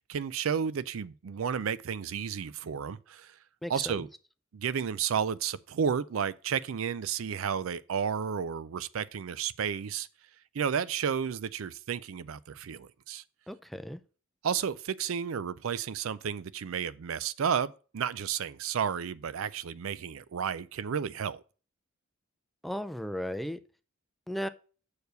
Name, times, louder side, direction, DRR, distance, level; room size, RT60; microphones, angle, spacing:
voice 1, 0.1-3.4 3.7-4.1 4.5-10.1 10.5-13.2 14.4-21.4, right 7 dB, 80° right, 0.4 m, -32 dB
voice 2, 3.6-4.0 13.5-14.0 22.6-23.6 24.3-24.5, equal, ahead, 0.4 m, -35 dB
6.6 x 4.6 x 6.7 m
head